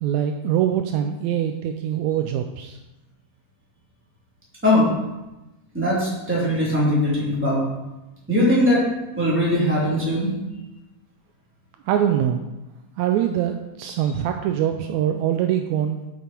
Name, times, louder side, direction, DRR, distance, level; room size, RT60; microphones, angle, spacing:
voice 1, 0.0-2.8 11.9-12.4 13.0-16.0, right 10 dB, 85° right, 5 dB, 1.6 m, -23 dB
voice 2, 5.7-7.6 8.3-8.8 9.1-10.3, left 1 dB, 5° right, -8 dB, 2.8 m, -20 dB
8.3 x 7.0 x 4.5 m, 1.0 s
omnidirectional pair, 3.8 m